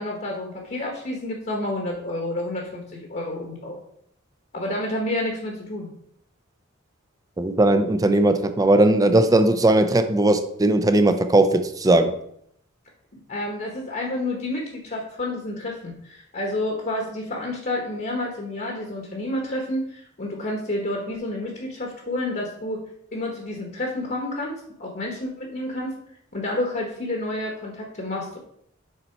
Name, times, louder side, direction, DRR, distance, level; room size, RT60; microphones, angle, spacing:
voice 1, 0.0-3.8 4.5-5.9 13.3-22.8 23.1-25.9 26.3-28.4, left 1 dB, 45° left, 0 dB, 1.1 m, -29 dB
voice 2, 7.4-12.1, right 2 dB, 15° right, 8 dB, 0.5 m, -18 dB
6.7 x 4.2 x 4.5 m, 0.71 s
head